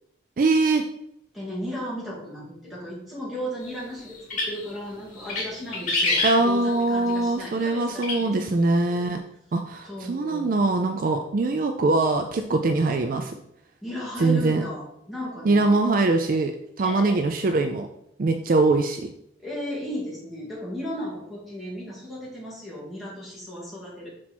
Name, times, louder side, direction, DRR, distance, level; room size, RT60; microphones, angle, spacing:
voice 1, 0.4-0.8 6.2-9.2 9.5-13.4 14.2-14.6 15.4-16.5 16.8-17.9 18.2-19.1, right 3 dB, 45° right, 5 dB, 0.4 m, -22 dB
voice 2, 1.3-8.3 8.7-9.0 9.8-10.7 13.8-15.7 16.8-17.2 19.4-24.1, equal, ahead, -7 dB, 2.3 m, -35 dB
sound 1, 4.1-4.7 5.2-5.5 5.7-6.8 8.0-8.2, left 2 dB, 45° left, 2.1 m, -25 dB
6.0 x 4.5 x 4.3 m, 0.77 s
head